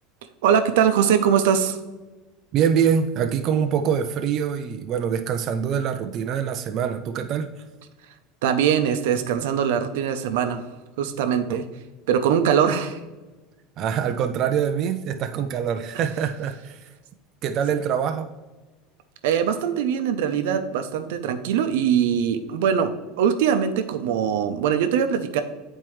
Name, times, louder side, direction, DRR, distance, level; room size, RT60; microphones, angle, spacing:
voice 1, 0.4-1.8 8.4-10.6 11.0-11.6 12.1-13.0 19.2-22.9 23.2-25.4, right 8 dB, 85° right, 8 dB, 0.6 m, -22 dB
voice 2, 2.5-7.5 11.5-11.6 13.8-16.8 17.4-18.3, right 8 dB, 40° right, 7 dB, 0.3 m, -24 dB
8.7 x 4.4 x 3.2 m, 1.2 s
supercardioid pair, 155°, 0 cm